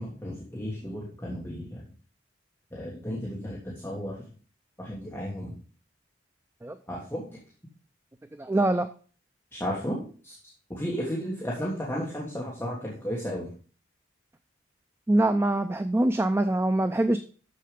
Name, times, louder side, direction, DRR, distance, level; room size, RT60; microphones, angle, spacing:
voice 1, 0.0-1.8 2.7-4.1 4.8-5.6 6.9-7.4 9.5-10.0 10.2-10.4 10.7-13.5, equal, 10° left, -5 dB, 1.5 m, -33 dB
voice 2, 8.4-8.9 15.1-17.2, right 1 dB, 15° right, 9 dB, 0.3 m, -24 dB
6.7 x 6.6 x 5.1 m, 0.40 s
head